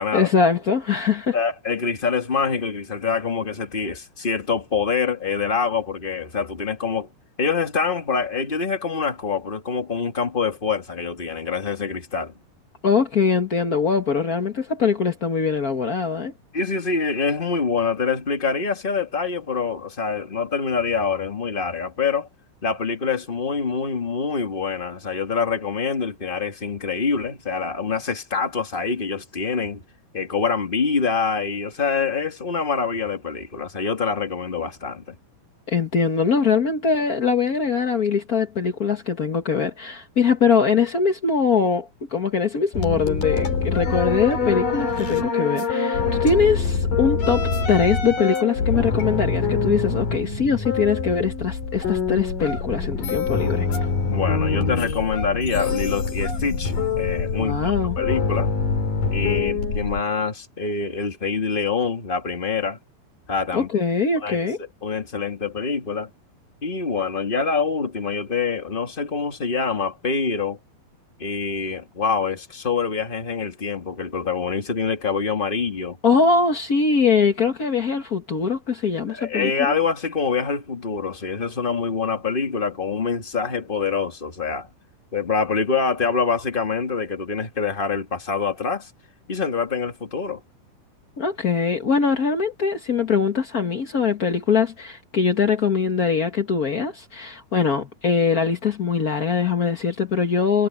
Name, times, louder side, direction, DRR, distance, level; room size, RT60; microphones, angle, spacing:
voice 1, 0.1-1.4 12.8-16.3 35.7-53.7 57.4-58.0 63.5-64.6 76.0-79.8 91.2-100.7, left 5 dB, 75° left, 0.8 m, -22 dB
voice 2, 1.3-7.1 7.4-12.3 16.5-22.3 22.6-29.8 30.1-35.1 54.1-58.5 59.1-62.8 63.3-63.7 64.2-66.1 66.6-70.6 71.2-76.0 79.1-84.7 85.1-88.9 89.3-90.4, left 5 dB, 25° left, 1.3 m, -25 dB
sound 1, 42.7-60.0, left 5 dB, 60° left, 5.8 m, -24 dB
omnidirectional pair, 4.3 m